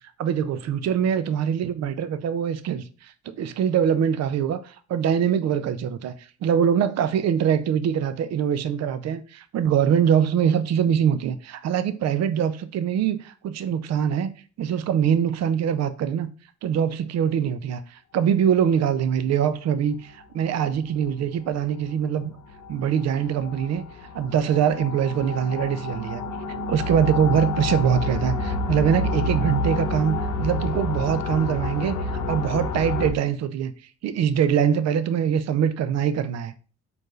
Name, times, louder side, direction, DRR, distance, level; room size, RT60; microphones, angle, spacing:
voice 1, 0.2-14.3 14.6-16.3 16.6-22.3 22.7-23.9 24.1-26.2 26.7-33.7 34.0-36.5, right 8 dB, 60° right, 0.5 m, -23 dB
sound 1, 20.1-20.2 20.9-21.2 21.5-21.6 22.2-33.1, left 3 dB, 75° left, 0.7 m, -29 dB
4.4 x 2.6 x 3.0 m
cardioid pair, 90°, 30 cm